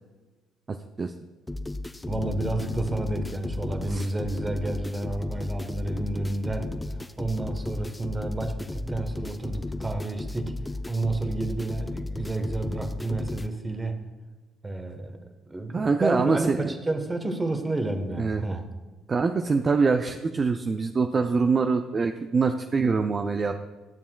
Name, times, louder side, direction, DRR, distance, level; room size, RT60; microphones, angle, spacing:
voice 1, 0.7-1.1 3.9-4.1 15.7-16.7 18.2-18.4 19.1-23.5, right 4 dB, 35° right, 6 dB, 0.5 m, -24 dB
sound 1, 1.5-13.5, left 2 dB, 15° left, 0.5 m, -34 dB
sound 2, 2.1-6.2, left 8 dB, 75° left, 0.4 m, -42 dB
voice 2, 2.1-14.1 14.6-15.2 15.5-18.7, right 2 dB, 20° right, 6 dB, 1.1 m, -30 dB
12.5 x 7.0 x 2.3 m, 1.3 s
hypercardioid pair, 50°, 0 cm